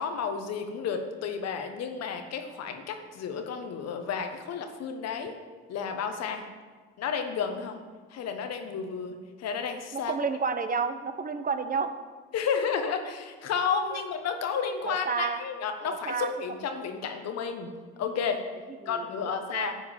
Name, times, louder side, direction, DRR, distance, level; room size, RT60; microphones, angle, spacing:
voice 1, 0.0-5.3 5.7-6.4 7.0-7.8 8.1-10.1 12.3-17.7 18.0-18.4 18.8-19.7, left 6 dB, 55° left, 6 dB, 1.3 m, -32 dB
voice 2, 9.9-12.0 13.9-14.0 14.9-15.4 15.9-16.3 18.8-19.1 19.5-19.7, right 5 dB, 30° right, 9 dB, 0.9 m, -30 dB
10.5 x 4.7 x 7.3 m, 1.5 s
supercardioid pair, 70°, 30 cm